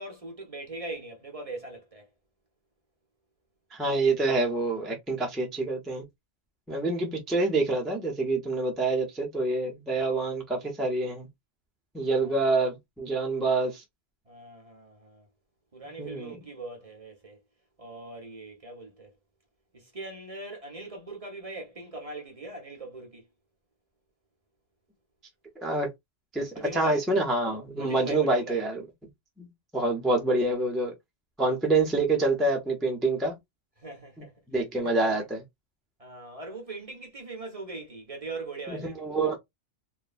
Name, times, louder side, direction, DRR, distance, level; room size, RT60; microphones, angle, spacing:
voice 1, 0.0-2.1 6.9-7.0 12.2-12.3 14.3-15.3 15.7-17.4 17.8-19.1 19.7-23.2 26.5-27.0 27.8-28.6 33.8-34.3 34.8-35.0 36.0-38.9, right 2 dB, 35° right, 0.7 m, -41 dB
voice 2, 3.7-6.0 6.7-11.3 11.9-13.8 16.0-16.4 25.6-25.9 26.3-28.8 29.4-30.9 31.4-33.3 34.5-35.4 38.7-39.4, right 2 dB, ahead, 0.4 m, -27 dB
3.1 x 2.1 x 2.3 m
omnidirectional pair, 1.2 m